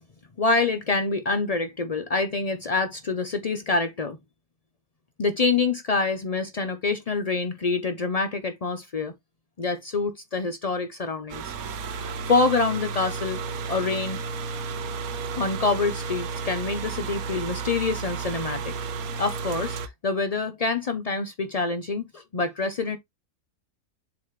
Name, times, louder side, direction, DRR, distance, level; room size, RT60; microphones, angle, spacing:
voice 1, 0.4-4.2 5.2-9.1 9.6-11.5 11.9-13.4 13.7-14.2 15.4-18.7 19.2-19.8 20.0-23.0, left 3 dB, 65° left, 0.3 m, -26 dB
sound 1, 11.3-19.9, right 5 dB, 65° right, 1.2 m, -32 dB
7.5 x 4.2 x 3.1 m
omnidirectional pair, 1.7 m